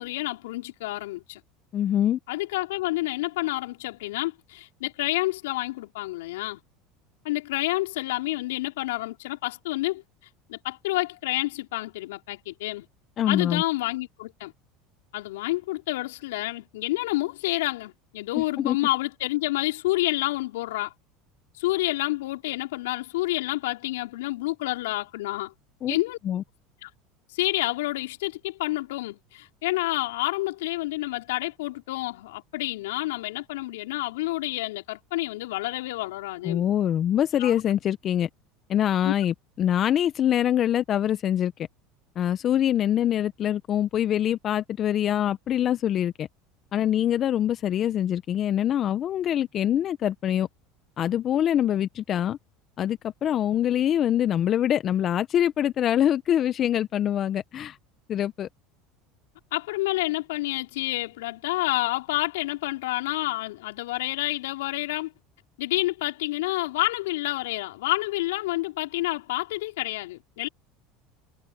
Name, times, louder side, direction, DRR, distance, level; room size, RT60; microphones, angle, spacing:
voice 1, 0.0-1.4 2.3-6.6 7.2-10.0 10.5-12.9 13.3-14.5 15.1-20.9 21.6-25.5 25.9-26.2 26.8-26.9 27.3-36.6 37.4-37.5 39.0-39.1 59.5-65.1 65.6-70.5, left 19 dB, 80° left, 4.7 m, -29 dB
voice 2, 1.7-2.2 13.2-13.6 18.3-18.8 25.8-26.0 26.2-26.4 36.4-38.3 38.7-41.5 42.2-46.3 46.7-50.5 51.0-52.4 52.8-57.8 58.1-58.5, left 10 dB, 45° left, 1.0 m, -24 dB
hypercardioid pair, 90°, 0 cm